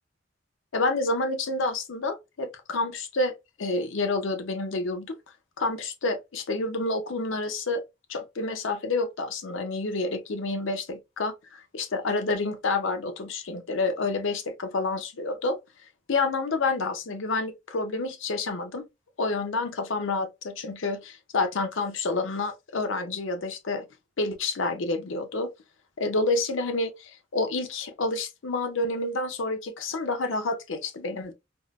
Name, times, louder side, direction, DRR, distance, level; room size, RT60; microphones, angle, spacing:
voice 1, 0.7-3.3 3.6-5.2 5.6-7.8 8.1-15.6 16.1-18.9 19.2-23.8 24.2-25.5 26.0-31.3, left 3 dB, 70° left, 0.6 m, -29 dB
3.6 x 2.1 x 2.4 m
head